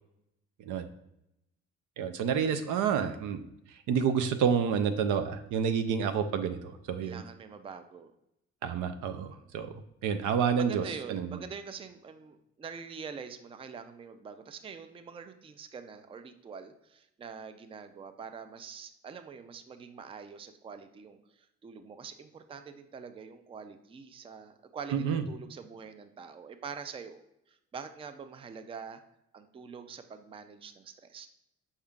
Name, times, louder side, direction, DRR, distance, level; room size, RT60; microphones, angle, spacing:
voice 1, 2.0-3.5 3.9-7.2 8.6-9.7 10.0-11.4 24.9-25.2, right 7 dB, 85° right, 9 dB, 0.5 m, -29 dB
voice 2, 7.0-8.1 9.3-9.5 10.6-21.2 21.6-27.2 27.5-29.0 29.3-31.3, right 6 dB, 20° right, 9 dB, 0.3 m, -45 dB
5.4 x 3.6 x 2.3 m, 0.83 s
cardioid pair, 90°, 30 cm